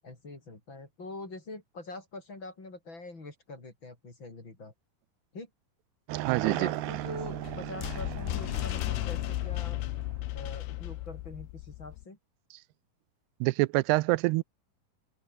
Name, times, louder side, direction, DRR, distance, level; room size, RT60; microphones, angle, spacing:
voice 1, 0.0-4.7 5.3-5.5 6.4-9.8 10.3-12.2, left 2 dB, 30° left, 5.5 m, -44 dB
sound 1, 6.1-10.5, right 14 dB, 75° right, 3.0 m, -37 dB
voice 2, 6.3-6.7 13.4-14.4, right 22 dB, 90° right, 2.7 m, -25 dB
sound 2, 6.9-12.0, left 18 dB, 85° left, 3.0 m, -35 dB
open air
omnidirectional pair, 4.6 m